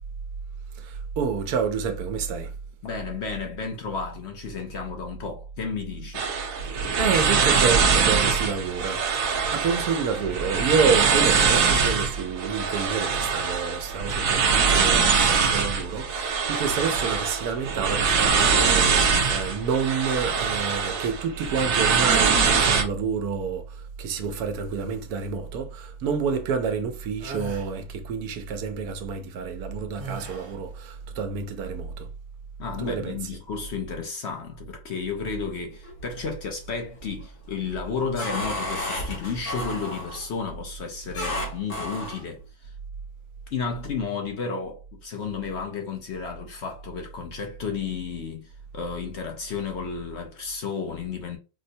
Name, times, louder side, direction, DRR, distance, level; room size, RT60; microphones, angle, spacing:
voice 1, 0.8-2.5 6.7-32.1 32.8-33.2, right 6 dB, 90° right, 1.2 m, -29 dB
voice 2, 2.8-6.2 32.6-42.7 43.5-51.4, left 5 dB, 60° left, 0.8 m, -32 dB
sound 1, 6.1-22.8, right 5 dB, 70° right, 1.1 m, -23 dB
sound 2, 27.2-27.7 30.0-30.7, right 4 dB, 55° right, 1.0 m, -37 dB
sound 3, 35.7-36.4 36.8-37.2 37.7-40.3 41.1-42.3, left 1 dB, 75° left, 2.0 m, -32 dB
4.4 x 2.1 x 2.7 m
omnidirectional pair, 1.6 m